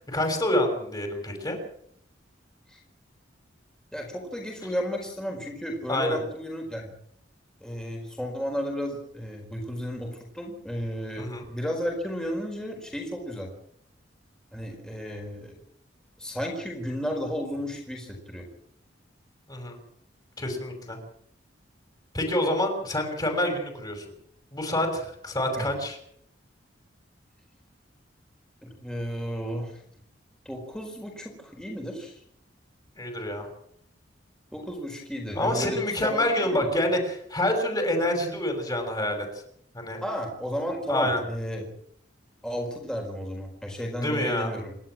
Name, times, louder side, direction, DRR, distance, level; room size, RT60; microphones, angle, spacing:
voice 1, 0.1-1.6 5.9-6.2 11.2-11.4 19.5-19.8 20.4-21.0 22.1-24.0 24.5-26.0 33.0-33.5 35.3-39.3 39.7-40.0 40.9-41.2 44.0-44.5, left 1 dB, 20° left, 4 dB, 6.1 m, -27 dB
voice 2, 3.9-6.9 7.6-13.5 14.5-15.6 16.2-18.5 25.6-25.7 28.6-29.8 30.4-32.2 34.5-36.7 40.0-41.7 42.4-44.7, equal, 5° left, 1 dB, 4.6 m, -33 dB
28.5 x 12.0 x 7.6 m, 0.69 s
head